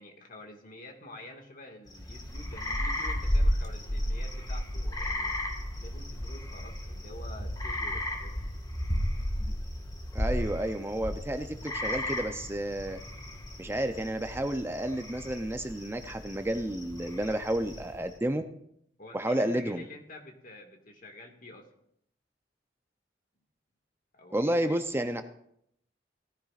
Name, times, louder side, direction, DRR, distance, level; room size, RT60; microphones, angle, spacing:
voice 1, 0.0-5.4 5.8-8.5 19.0-21.7 24.1-24.8, left 1 dB, 50° left, 3 dB, 1.8 m, -48 dB
sound 1, 1.9-18.1, left 1 dB, 20° left, 1.5 m, -34 dB
voice 2, 10.1-13.0 13.6-18.4 19.1-19.8 24.3-25.2, right 1 dB, 15° right, 7 dB, 0.5 m, -31 dB
17.5 x 14.0 x 2.5 m, 0.73 s
head